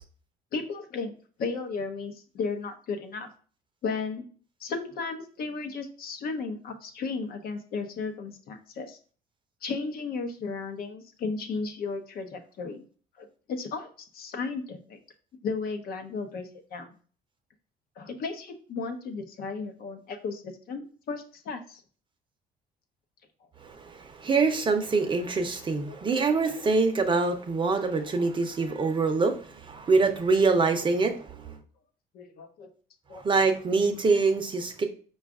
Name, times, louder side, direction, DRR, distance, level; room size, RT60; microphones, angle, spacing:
voice 1, 0.5-1.1 1.4-3.3 3.8-4.3 4.6-9.0 9.6-12.8 13.2-15.0 15.4-16.9 18.0-21.8 25.9-26.0 32.1-32.7 33.1-33.3, left 4 dB, 60° left, 6 dB, 0.7 m, -34 dB
voice 2, 23.6-31.6 33.1-34.8, right 4 dB, 30° right, 6 dB, 0.6 m, -25 dB
4.8 x 2.4 x 3.5 m, 0.42 s
cardioid pair, 110°, 17 cm